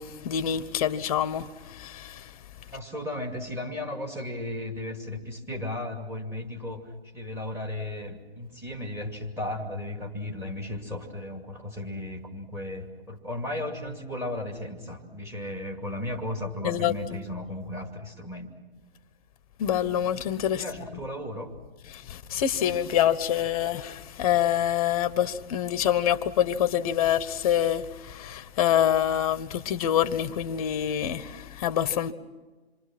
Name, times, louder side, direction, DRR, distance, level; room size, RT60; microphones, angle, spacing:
voice 1, 0.0-2.3 16.6-16.9 19.6-20.6 21.9-32.1, left 10 dB, 35° left, 1.2 m, -26 dB
voice 2, 2.7-18.5 20.5-21.6, left 1 dB, 10° right, 2.5 m, -35 dB
27.5 x 23.5 x 6.1 m
hypercardioid pair, 145°, 32 cm